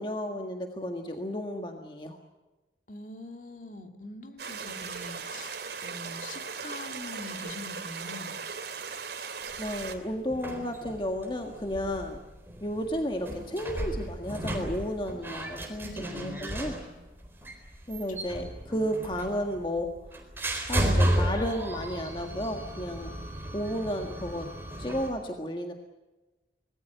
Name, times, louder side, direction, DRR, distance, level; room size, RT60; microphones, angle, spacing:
voice 1, 0.0-2.2 9.6-12.2 12.6-16.8 17.9-19.9 20.7-23.1 23.5-24.5 24.8-25.7, equal, 25° left, 4 dB, 1.7 m, -33 dB
voice 2, 2.9-8.3 15.1-15.4 15.8-16.4, left 1 dB, 45° left, 5 dB, 2.3 m, -44 dB
sound 1, 4.4-10.0, right 5 dB, 70° right, 2.9 m, -38 dB
sound 2, 9.4-25.1, right 1 dB, 15° right, 4.1 m, -34 dB
25.5 x 19.5 x 7.9 m, 1.1 s
head